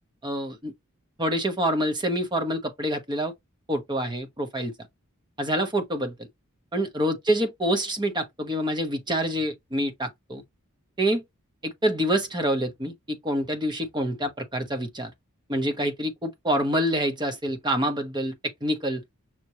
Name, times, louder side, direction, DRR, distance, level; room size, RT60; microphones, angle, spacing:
voice 1, 0.2-0.7 1.2-3.3 3.7-4.7 5.4-6.3 6.7-10.4 11.0-11.2 11.6-15.1 15.5-18.4 18.6-19.0, equal, 20° right, 1.0 m, -26 dB
5.9 x 3.0 x 2.9 m
head